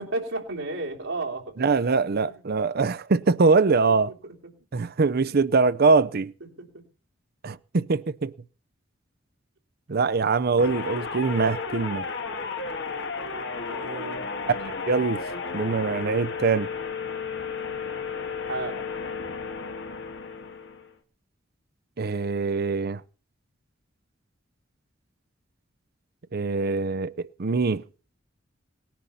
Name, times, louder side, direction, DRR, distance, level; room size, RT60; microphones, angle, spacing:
voice 1, 0.0-1.4 1.8-2.2 6.6-6.7 13.6-14.3 18.5-18.8, right 2 dB, 80° right, 3.2 m, -32 dB
voice 2, 1.6-4.1 4.7-6.3 7.4-8.3 9.9-12.1 14.5-14.6 14.8-16.7 22.0-23.0 26.3-27.8, right 4 dB, 50° right, 0.6 m, -23 dB
sound 1, 10.6-20.9, left 5 dB, 65° left, 1.7 m, -33 dB
19.0 x 10.5 x 5.6 m
head